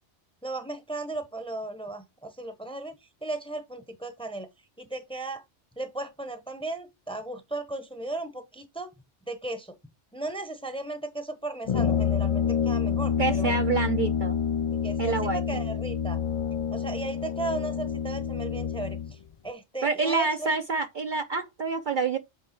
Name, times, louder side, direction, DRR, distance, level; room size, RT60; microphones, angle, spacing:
voice 1, 0.4-3.0 3.2-4.5 4.8-5.4 5.8-8.9 9.3-9.7 10.1-13.6 14.8-16.2 16.7-19.2 19.4-20.5, right 2 dB, 5° left, 0.9 m, -35 dB
Brass instrument, 11.7-19.1, left 7 dB, 55° left, 0.4 m, -28 dB
voice 2, 13.2-14.4 15.0-15.6 19.8-22.2, right 4 dB, 50° right, 0.7 m, -27 dB
8.5 x 3.1 x 4.5 m
omnidirectional pair, 1.2 m